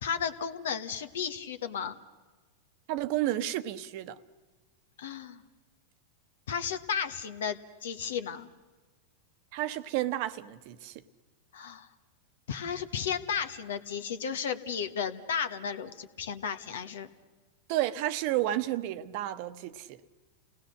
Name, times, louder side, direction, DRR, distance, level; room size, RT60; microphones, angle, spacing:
voice 1, 0.0-2.0 5.0-5.4 6.5-8.5 11.5-11.9 12.5-17.1, left 7 dB, 75° left, 1.4 m, -34 dB
voice 2, 2.9-4.2 9.5-11.0 17.7-20.0, right 14 dB, 55° right, 1.0 m, -31 dB
29.0 x 18.5 x 6.6 m
hypercardioid pair, 105°, 0 cm